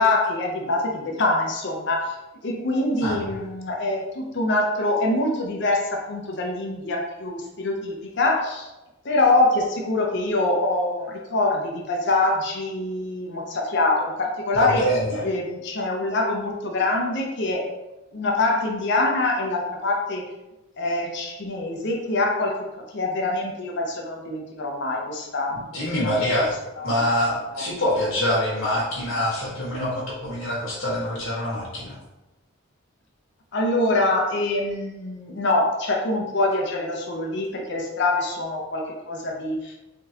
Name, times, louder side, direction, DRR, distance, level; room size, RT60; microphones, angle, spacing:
voice 1, 0.0-2.2 2.4-8.7 9.0-14.9 15.2-17.7 18.1-20.2 20.8-22.6 22.9-25.6 26.0-26.4 26.8-26.9 27.5-27.6 33.5-39.7, left 2 dB, 55° left, 0 dB, 0.6 m, -24 dB
voice 2, 14.5-15.3 25.7-26.6 26.8-32.0, left 1 dB, 75° left, -6 dB, 1.4 m, -25 dB
3.7 x 3.5 x 2.8 m, 1.0 s
head